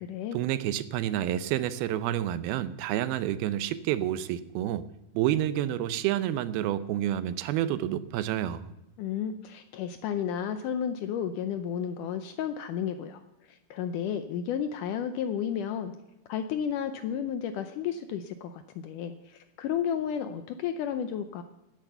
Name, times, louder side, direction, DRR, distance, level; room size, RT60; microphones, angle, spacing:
voice 1, 0.3-4.8 5.1-8.7, right 12 dB, 80° right, 13 dB, 2.5 m, -29 dB
voice 2, 9.0-13.2 13.5-15.9 16.3-21.4, left 8 dB, 80° left, 9 dB, 1.8 m, -32 dB
15.5 x 9.2 x 6.9 m, 0.96 s
omnidirectional pair, 4.4 m